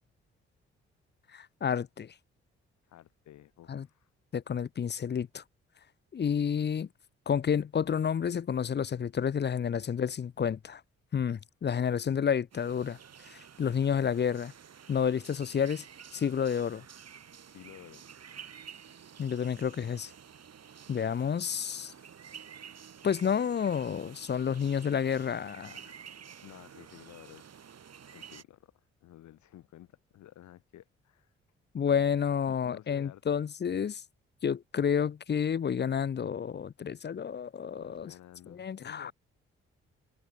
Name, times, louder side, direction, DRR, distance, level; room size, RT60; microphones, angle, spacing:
voice 1, 1.3-2.1 3.7-3.9 4.3-5.4 6.1-6.9 7.3-10.8 11.1-13.0 13.3-14.5 14.9-15.8 16.1-16.8 19.2-20.1 20.9-21.9 23.0-25.8 31.7-34.0 34.4-38.1 38.5-39.1, left 7 dB, 35° left, 0.7 m, -30 dB
voice 2, 2.9-4.1 17.5-18.0 26.4-27.7 28.0-31.3 32.4-33.2 37.8-39.1, left 13 dB, 65° left, 1.3 m, -53 dB
sound 1, 12.5-28.4, right 8 dB, 55° right, 4.1 m, -51 dB
hypercardioid pair, 40°, 31 cm